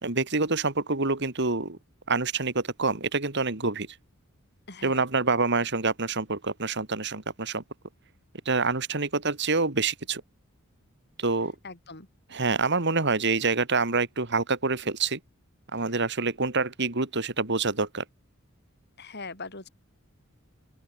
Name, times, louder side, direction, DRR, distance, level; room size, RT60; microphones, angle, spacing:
voice 1, 0.0-1.8 2.1-3.9 4.8-7.6 8.5-10.2 11.2-11.5 12.3-15.2 15.7-18.0, right 3 dB, 55° right, 2.7 m, -26 dB
voice 2, 4.7-5.1 11.6-12.1 15.8-15.9 19.0-19.7, left 3 dB, 55° left, 7.1 m, -41 dB
open air
head